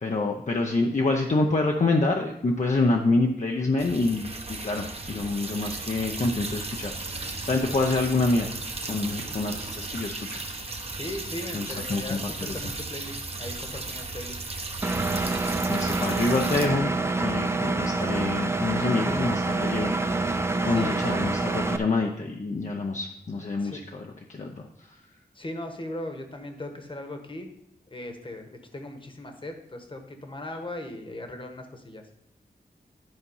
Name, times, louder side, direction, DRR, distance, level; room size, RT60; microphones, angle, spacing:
voice 1, 0.0-8.5 8.9-10.4 11.5-12.7 15.7-16.9 17.2-20.2 20.6-24.7, left 3 dB, 45° left, 1 dB, 0.7 m, -27 dB
sound 1, 3.8-16.7, right 3 dB, 35° right, 1.0 m, -35 dB
voice 2, 10.8-14.4 20.6-21.2 23.6-23.8 25.3-27.5 27.9-32.0, left 1 dB, 30° left, 5 dB, 1.3 m, -38 dB
Engine, 14.8-21.8, right 3 dB, 15° right, 0.5 m, -27 dB
11.0 x 4.1 x 5.6 m, 0.80 s
wide cardioid pair, 105°, 17 cm